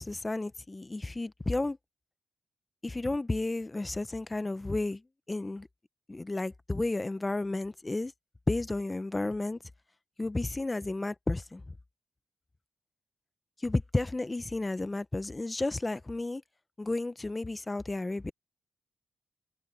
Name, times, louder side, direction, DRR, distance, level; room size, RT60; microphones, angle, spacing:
voice 1, 0.0-1.8 2.8-5.0 5.3-5.7 6.1-8.1 8.5-9.6 10.2-11.6 13.6-16.4 16.8-18.3, left 2 dB, 25° left, 1.0 m, -32 dB
supercardioid pair, 55°, 0 cm